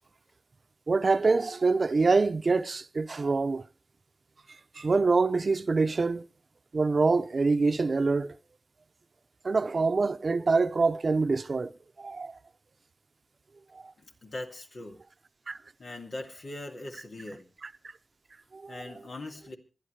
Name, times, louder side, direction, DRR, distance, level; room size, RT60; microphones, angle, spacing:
voice 1, 0.9-3.6 4.8-6.2 6.7-8.3 9.4-11.7 12.0-12.3 15.5-15.6 18.5-18.7, right 3 dB, 75° right, 0.6 m, -25 dB
voice 2, 14.0-15.0 15.8-17.5 18.7-19.6, left 2 dB, 90° left, 2.5 m, -41 dB
27.0 x 10.5 x 3.2 m
cardioid pair, 40°, 0 cm